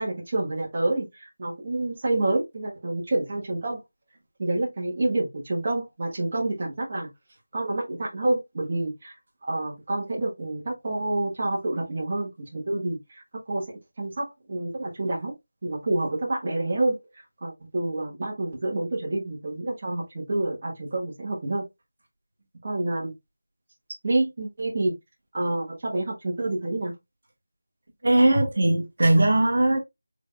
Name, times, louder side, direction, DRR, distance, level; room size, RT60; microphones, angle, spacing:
voice 1, 0.0-3.8 4.4-7.1 7.5-9.1 9.4-13.6 14.0-15.3 15.6-17.0 17.4-21.6 22.6-23.1 24.0-24.9 25.3-26.9, right 2 dB, 30° right, 1.5 m, -28 dB
voice 2, 28.0-29.8, right 1 dB, 45° right, 1.5 m, -19 dB
5.1 x 3.7 x 2.4 m
figure-of-eight pair, 175°, 0 cm